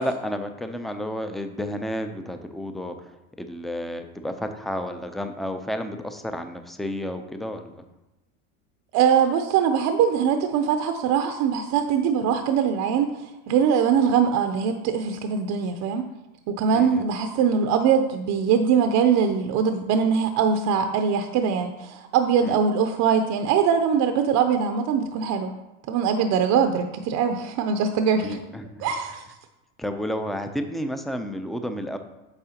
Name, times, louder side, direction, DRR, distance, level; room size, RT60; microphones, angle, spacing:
voice 1, 0.0-7.8 16.7-17.1 22.4-22.6 28.2-28.9 29.8-32.0, equal, ahead, 7 dB, 0.5 m, -31 dB
voice 2, 8.9-16.0 16.5-25.5 25.9-28.4 28.8-29.2, right 7 dB, 45° right, 7 dB, 0.7 m, -22 dB
8.8 x 6.1 x 2.9 m, 1.0 s
hypercardioid pair, 105°, 42 cm